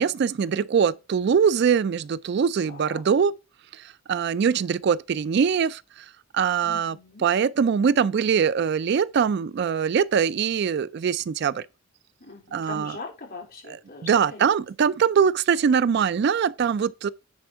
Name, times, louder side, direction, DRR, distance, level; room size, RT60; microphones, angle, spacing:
voice 1, 0.0-3.3 4.1-5.8 6.3-6.9 7.2-11.6 12.5-13.0 14.0-17.1, right 7 dB, 55° right, 0.3 m, -22 dB
voice 2, 2.7-3.0 6.6-7.3 12.2-14.5, left 3 dB, 50° left, 3.6 m, -41 dB
9.5 x 4.4 x 4.5 m
head